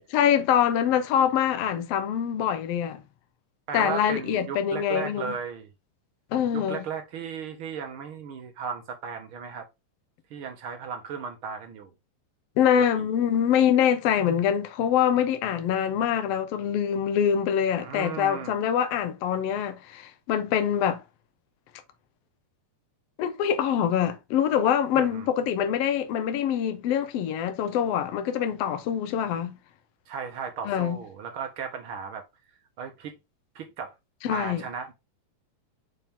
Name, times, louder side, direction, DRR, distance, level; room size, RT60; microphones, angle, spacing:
voice 1, 0.1-3.0 3.7-5.3 6.3-6.8 12.6-21.0 23.2-29.5 30.6-31.0 34.2-34.6, left 9 dB, 65° left, 1.7 m, -24 dB
voice 2, 3.7-5.7 6.5-9.7 10.3-11.9 12.8-13.1 17.8-18.6 24.9-25.3 30.1-32.2 32.8-33.1 33.5-33.9 34.3-34.9, right 6 dB, 60° right, 1.4 m, -36 dB
5.8 x 4.4 x 3.6 m
omnidirectional pair, 3.4 m